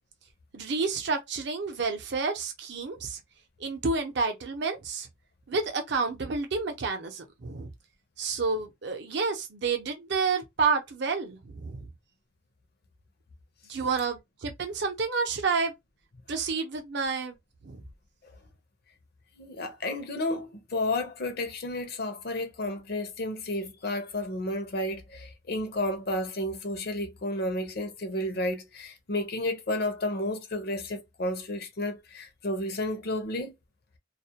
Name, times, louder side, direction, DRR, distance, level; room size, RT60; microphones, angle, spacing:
voice 1, 0.5-3.2 3.6-5.1 5.5-7.7 8.2-11.9 13.7-15.7 16.3-17.4 17.6-17.8, right 4 dB, 55° right, 0.6 m, -29 dB
voice 2, 19.4-33.5, left 1 dB, 50° left, 0.6 m, -32 dB
2.3 x 2.1 x 2.8 m
head